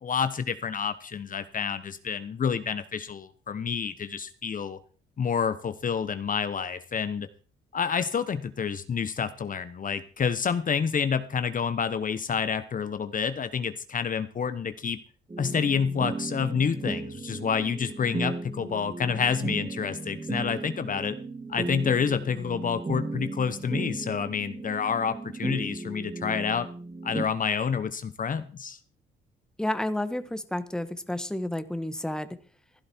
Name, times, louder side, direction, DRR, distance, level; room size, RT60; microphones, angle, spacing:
voice 1, 0.0-4.8 5.2-7.3 7.7-15.0 15.4-21.2 21.5-26.7 27.0-28.8, left 6 dB, 45° left, 12 dB, 1.1 m, -28 dB
sound 1, 15.3-27.2, right 3 dB, 25° right, 2.3 m, -35 dB
voice 2, 29.6-32.4, left 1 dB, 5° left, 11 dB, 1.4 m, -31 dB
15.5 x 12.0 x 4.5 m, 0.38 s
cardioid pair, 90°, 20 cm